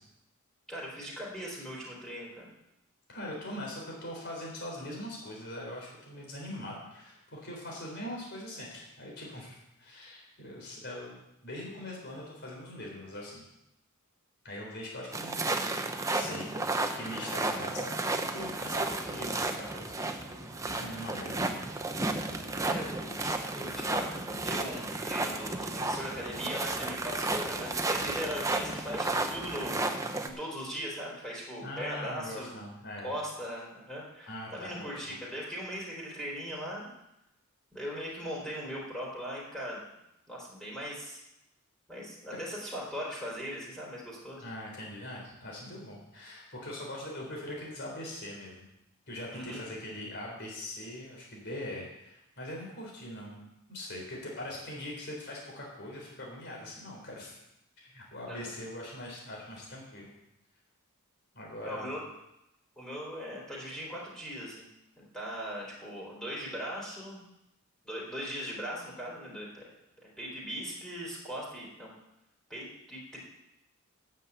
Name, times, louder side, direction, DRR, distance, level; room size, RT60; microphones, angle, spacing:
voice 1, 0.7-2.5 19.1-19.4 22.6-29.9 30.2-32.6 33.0-36.9 37.7-39.8 40.3-41.2 41.9-44.4 49.3-49.6 58.3-58.5 61.6-62.0 62.8-64.7 65.0-67.2 67.8-69.6 70.2-71.9 72.5-73.2, equal, 5° left, -5 dB, 3.7 m, -39 dB
voice 2, 3.1-13.4 14.4-15.8 16.1-16.7 16.9-19.9 20.6-21.5 31.6-33.2 34.3-35.2 42.3-42.4 44.4-48.7 49.1-53.4 53.7-57.4 57.8-60.1 61.3-61.9, left 1 dB, 50° left, -2 dB, 4.1 m, -42 dB
sound 1, 15.1-30.3, right 2 dB, 15° right, 0.8 m, -33 dB
sound 2, 18.4-29.9, right 1 dB, 60° right, 1.7 m, -51 dB
9.6 x 7.6 x 8.1 m, 0.86 s
head